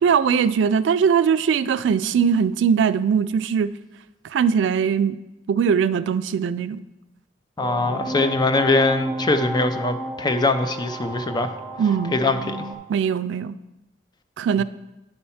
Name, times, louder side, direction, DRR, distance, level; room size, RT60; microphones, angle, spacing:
voice 1, 0.0-3.7 4.3-5.2 5.5-6.8 11.8-12.2 12.9-13.5 14.4-14.6, right 7 dB, 85° right, 14 dB, 0.3 m, -20 dB
voice 2, 7.6-11.5 12.1-12.6, left 3 dB, 25° left, 9 dB, 0.4 m, -22 dB
sound 1, 7.6-12.7, right 1 dB, 5° right, 0.8 m, -32 dB
9.1 x 4.4 x 5.6 m, 0.98 s
head